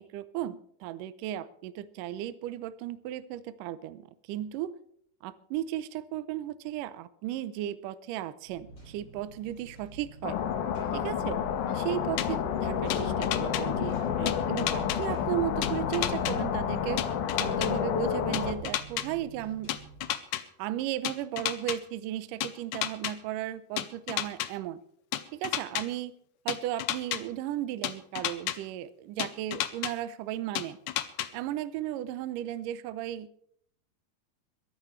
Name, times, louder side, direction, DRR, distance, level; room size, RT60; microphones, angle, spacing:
voice 1, 0.0-4.7 5.2-10.4 10.9-11.4 11.7-17.0 17.4-19.7 20.6-24.8 25.3-26.1 26.5-30.8 31.3-33.3, right 12 dB, 85° right, 14 dB, 1.9 m, -35 dB
Engine, 8.5-20.1, right 5 dB, 30° left, 8.0 m, -48 dB
sound 1, 10.2-18.5, left 8 dB, 70° left, 2.1 m, -30 dB
sound 2, 12.2-12.3 12.9-13.6 14.3-15.0 15.6-16.3 17.0-17.7 18.3-19.1 19.7-20.4 21.0-21.8 22.4-23.1 23.8-24.5 25.1-25.8 26.5-27.2 27.8-28.6 29.2-29.9 30.6-31.3, left 13 dB, 85° left, 1.8 m, -31 dB
22.0 x 13.0 x 3.2 m, 0.65 s
omnidirectional pair, 4.7 m